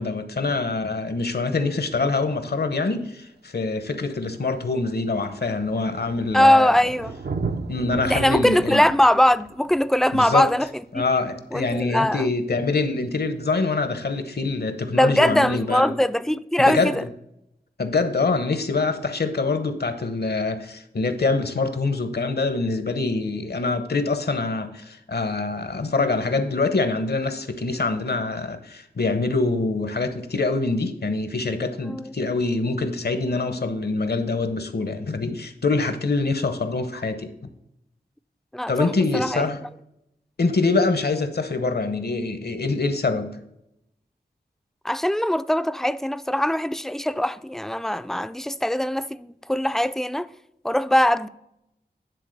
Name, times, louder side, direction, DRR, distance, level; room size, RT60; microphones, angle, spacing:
voice 1, 0.0-6.7 7.7-8.8 10.1-10.5 10.9-15.9 16.6-17.1 17.8-37.3 38.7-39.6 40.4-43.4, left 3 dB, 70° left, 1.0 m, -25 dB
Thunder, 2.9-3.0 4.0-4.1 4.3-11.6 13.3-13.4, right 4 dB, 75° right, 0.6 m, -36 dB
voice 2, 6.3-7.2 8.0-10.7 10.9-11.0 11.5-12.3 14.9-17.0 31.8-32.1 38.5-39.4 44.8-50.3 50.6-51.3, left 1 dB, ahead, 0.3 m, -21 dB
10.0 x 3.8 x 6.5 m
wide cardioid pair, 75°, 17 cm